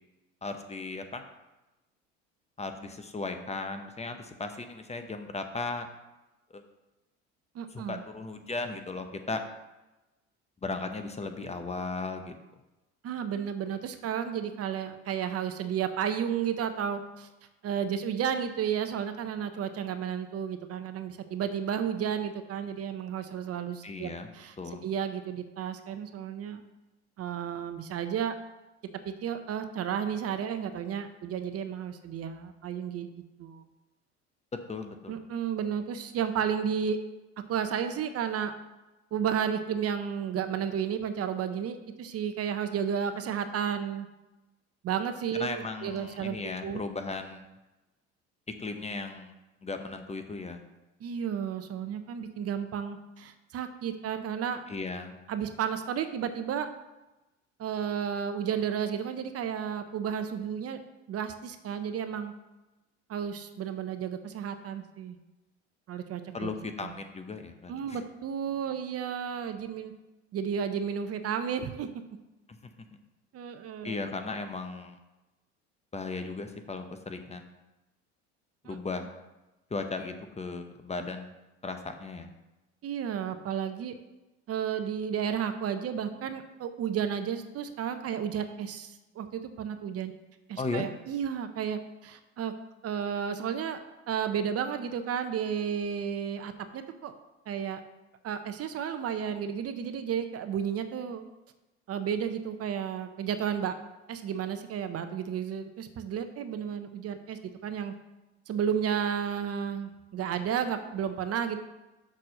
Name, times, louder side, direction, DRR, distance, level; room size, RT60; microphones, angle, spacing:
voice 1, 0.4-1.2 2.6-5.9 6.5-6.6 7.7-9.4 10.6-12.3 23.8-24.3 24.6-24.8 34.7-35.2 45.3-47.6 48.6-49.3 49.6-50.6 54.7-55.1 66.3-68.0 73.8-75.0 75.9-77.5 78.6-79.1 79.7-81.3 81.6-82.3 90.6-90.9, left 3 dB, 20° left, 7 dB, 0.8 m, -36 dB
voice 2, 7.5-8.0 13.0-17.3 17.6-24.6 24.8-26.6 27.2-28.4 29.0-33.1 33.4-33.6 35.1-37.0 37.5-38.5 39.1-44.1 44.8-46.8 51.0-54.6 55.3-56.7 57.6-60.8 61.1-62.3 63.1-65.2 65.9-66.5 66.8-66.9 67.7-69.9 70.3-71.9 73.3-74.0 78.6-78.8 82.8-83.9 84.5-90.1 90.5-92.5 92.8-93.8 94.1-97.1 97.5-97.8 98.2-101.2 101.9-103.8 104.1-107.9 108.5-111.6, right 8 dB, 45° right, 9 dB, 0.7 m, -32 dB
6.2 x 4.3 x 6.3 m, 1.0 s
supercardioid pair, 80°, 34 cm